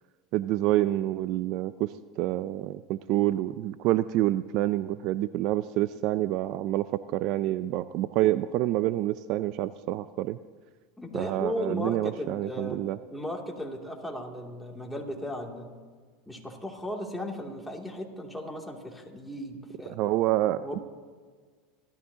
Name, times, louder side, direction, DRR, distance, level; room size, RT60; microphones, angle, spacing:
voice 1, 0.3-10.4 11.1-13.0 19.9-20.8, right 15 dB, 55° right, 15 dB, 0.4 m, -27 dB
voice 2, 11.0-15.7 16.3-20.0 20.6-20.8, left 1 dB, 5° left, -1 dB, 2.6 m, -36 dB
28.0 x 13.5 x 2.9 m, 1.5 s
supercardioid pair, 105°, 0 cm